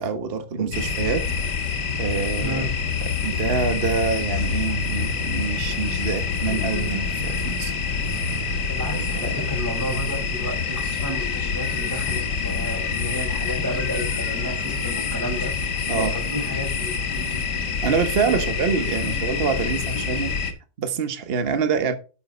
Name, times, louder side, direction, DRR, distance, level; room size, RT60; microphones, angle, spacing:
voice 1, 0.0-1.3 2.0-2.6 3.2-7.7 8.9-9.5 15.9-16.2 17.8-20.4 20.8-21.9, right 5 dB, 35° right, 1.3 m, -26 dB
sound 1, 0.7-20.5, left 5 dB, 70° left, 2.0 m, -26 dB
sound 2, 4.6-10.2, right 5 dB, 80° right, 4.2 m, -37 dB
voice 2, 8.7-15.5 15.9-17.6 18.3-18.4 19.1-19.4, equal, 10° left, 4.4 m, -32 dB
9.9 x 7.4 x 4.0 m
omnidirectional pair, 1.9 m